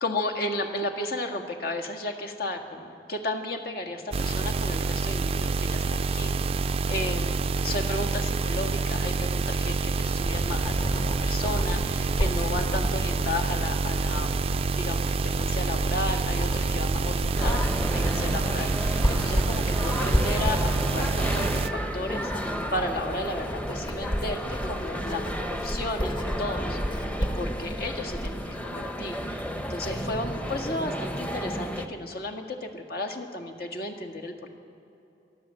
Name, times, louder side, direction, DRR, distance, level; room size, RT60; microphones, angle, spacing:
voice 1, 0.0-6.3 6.9-34.5, left 2 dB, 60° left, 3 dB, 1.9 m, -34 dB
sound 1, 4.1-21.7, right 4 dB, 35° right, 0.4 m, -27 dB
Writing, 9.8-28.4, equal, 25° left, 1.3 m, -32 dB
sound 2, 17.3-31.9, equal, 10° left, 0.9 m, -33 dB
24.0 x 14.0 x 7.7 m, 2.8 s
head